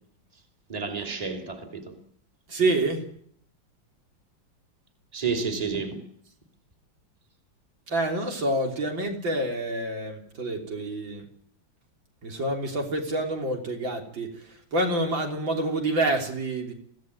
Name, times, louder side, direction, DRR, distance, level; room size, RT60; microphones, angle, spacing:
voice 1, 0.7-2.0 5.1-6.0, right 5 dB, 20° right, 3.0 m, -30 dB
voice 2, 2.5-3.1 7.9-11.3 12.2-14.3 14.7-16.7, right 2 dB, 70° right, 4.2 m, -27 dB
23.5 x 16.5 x 9.6 m
omnidirectional pair, 2.2 m